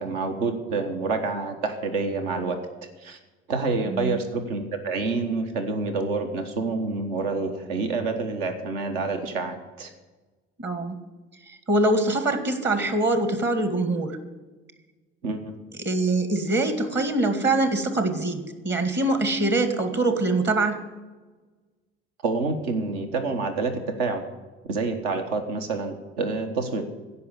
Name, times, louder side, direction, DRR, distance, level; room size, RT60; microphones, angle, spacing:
voice 1, 0.0-2.6 3.0-3.2 3.5-9.9 15.2-15.5 22.2-24.2 24.6-26.8, right 3 dB, 70° right, 6 dB, 1.4 m, -28 dB
voice 2, 3.8-4.2 10.6-11.0 11.5-14.2 15.8-20.9, right 2 dB, 35° right, 9 dB, 1.8 m, -24 dB
15.0 x 5.6 x 8.1 m, 1.2 s
hypercardioid pair, 55°, 30 cm